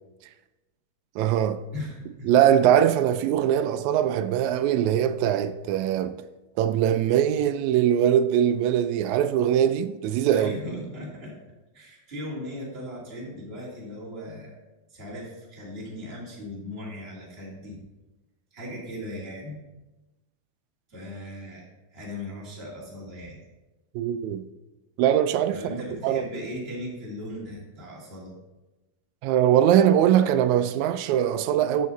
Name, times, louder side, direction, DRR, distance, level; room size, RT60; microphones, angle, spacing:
voice 1, 1.2-1.6 2.3-6.2 6.6-10.5 24.0-24.4 25.0-26.2 29.2-31.9, right 10 dB, 80° right, 1.9 m, -22 dB
voice 2, 1.7-2.3 10.3-11.3 11.7-14.6 14.9-17.8 18.5-19.6 20.9-23.5 25.5-28.3, left 1 dB, 20° right, 2.7 m, -38 dB
13.0 x 6.6 x 4.1 m
omnidirectional pair, 3.5 m